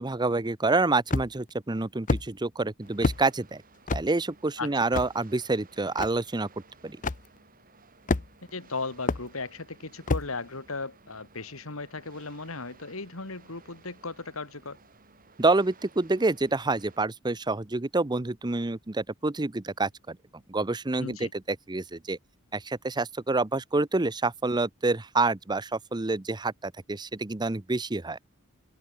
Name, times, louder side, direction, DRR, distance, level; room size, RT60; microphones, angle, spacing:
voice 1, 0.0-3.6 3.9-6.5 6.8-7.0 15.4-20.2 20.5-22.2 22.5-28.2, right 3 dB, 20° right, 0.8 m, -27 dB
sound 1, 1.1-1.5 2.1-2.3 3.0-3.2 3.9-4.1 4.9-5.1 6.0-6.1 7.0-7.2 8.1-8.5 9.1-9.2 10.1-10.3, left 3 dB, 40° left, 0.7 m, -27 dB
sound 2, 2.8-17.0, right 4 dB, 40° right, 7.9 m, -57 dB
voice 2, 8.5-14.8 21.0-21.3, left 3 dB, 75° left, 2.6 m, -36 dB
open air
head